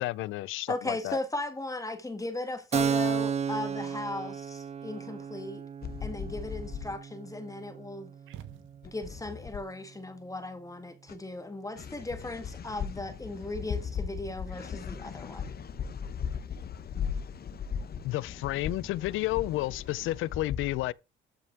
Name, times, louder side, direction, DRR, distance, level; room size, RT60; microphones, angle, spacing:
voice 1, 0.0-1.2 18.0-20.9, left 17 dB, 90° left, 0.5 m, -31 dB
voice 2, 0.7-5.6 6.0-8.1 8.8-15.5, left 2 dB, 15° left, 1.8 m, -37 dB
Keyboard (musical), 2.7-10.0, right 7 dB, 35° right, 0.4 m, -34 dB
voice 3, 5.8-6.9 11.1-11.2 11.8-20.3, left 7 dB, 50° left, 1.3 m, -37 dB
sound 1, 8.3-9.3, right 11 dB, 85° right, 1.2 m, -48 dB
13.0 x 5.4 x 4.8 m
cardioid pair, 90°, 20 cm